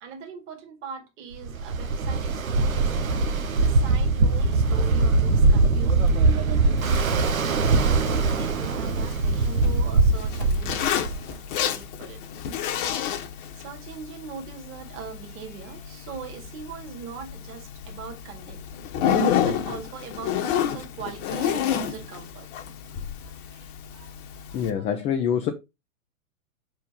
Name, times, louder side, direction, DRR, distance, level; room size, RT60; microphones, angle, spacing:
voice 1, 0.0-2.9 3.5-6.1 6.8-12.2 12.5-12.8 13.1-13.3 13.5-18.6 19.4-22.5 22.9-24.1 24.5-24.9, right 7 dB, 30° right, 2.0 m, -41 dB
Ocean, 1.4-11.3, right 3 dB, 75° right, 1.2 m, -22 dB
Zipper (clothing), 6.8-24.7, left 8 dB, 40° left, 1.1 m, -31 dB
voice 2, 24.5-25.5, left 8 dB, 15° left, 0.5 m, -25 dB
5.3 x 4.5 x 5.4 m
figure-of-eight pair, 110°, 42 cm